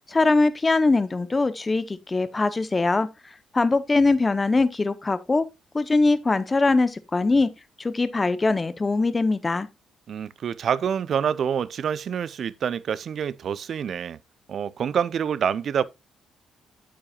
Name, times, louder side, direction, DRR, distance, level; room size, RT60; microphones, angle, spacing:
voice 1, 0.1-3.1 3.5-5.5 5.7-7.5 7.8-9.7, left 3 dB, 25° left, 0.8 m, -22 dB
voice 2, 10.1-14.2 14.5-15.9, right 8 dB, 60° right, 0.6 m, -27 dB
8.7 x 8.6 x 2.4 m
cardioid pair, 90°, 0 cm